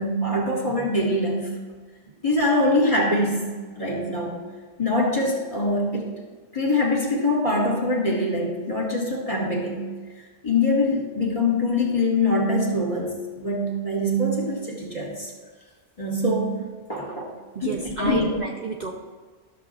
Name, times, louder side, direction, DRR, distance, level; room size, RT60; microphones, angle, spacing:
voice 1, 0.0-1.5 2.2-3.5 3.8-4.5 4.8-6.1 6.5-9.9 10.4-15.3 16.0-16.5 16.9-17.3 17.6-18.4, left 1 dB, 30° left, -4 dB, 1.9 m, -23 dB
voice 2, 17.5-18.9, right 4 dB, 45° right, -2 dB, 0.8 m, -31 dB
13.0 x 6.8 x 2.5 m, 1.4 s
omnidirectional pair, 1.2 m